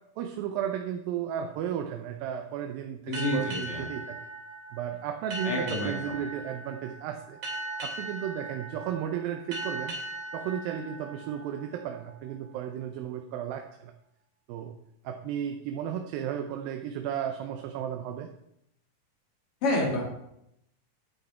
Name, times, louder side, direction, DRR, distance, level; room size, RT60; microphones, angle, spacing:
voice 1, 0.2-4.2 4.7-7.4 7.8-10.0 10.3-13.9 14.5-14.7 15.0-18.3, right 9 dB, 85° right, 4 dB, 2.5 m, -34 dB
voice 2, 3.1-3.8 5.4-6.1 19.6-20.0, left 1 dB, 45° left, -1 dB, 2.9 m, -28 dB
sound 1, 3.1-12.3, right 2 dB, 35° right, 3.1 m, -39 dB
10.5 x 8.6 x 4.3 m, 0.80 s
omnidirectional pair, 4.1 m